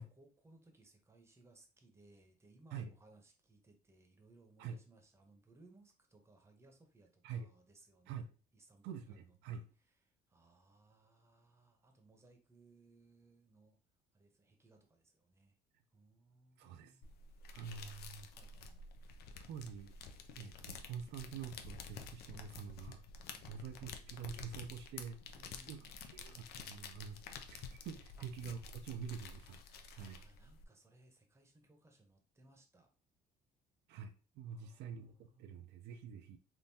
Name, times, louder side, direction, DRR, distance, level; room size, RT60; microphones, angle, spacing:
voice 1, 0.0-8.2 8.5-9.6 10.3-13.8 14.1-15.6 15.9-17.0 17.8-18.0 18.3-18.9 23.3-23.5 25.4-25.9 28.2-28.3 29.9-32.9 34.4-35.6, right 2 dB, 15° right, 3 dB, 0.8 m, -65 dB
voice 2, 8.8-9.7 16.6-17.0 17.5-18.3 19.5-19.9 20.3-23.1 23.5-25.2 25.7-29.6 29.9-30.2 33.9-36.4, right 6 dB, 85° right, 7 dB, 0.5 m, -47 dB
sound 1, 17.0-30.6, left 5 dB, 70° left, 0.5 m, -51 dB
3.6 x 2.6 x 2.7 m, 0.35 s
cardioid pair, 110°, 17 cm